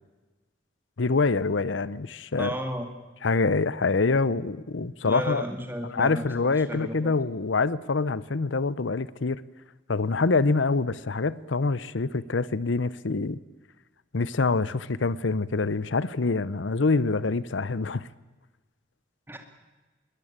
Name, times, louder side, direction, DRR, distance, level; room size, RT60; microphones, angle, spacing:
voice 1, 1.0-2.5 3.2-5.4 5.8-9.4 9.9-13.4 14.1-18.1, left 3 dB, 85° left, 0.8 m, -25 dB
voice 2, 2.4-2.9 5.0-7.1 19.3-19.4, equal, 10° right, 2.4 m, -34 dB
22.0 x 19.5 x 8.9 m
head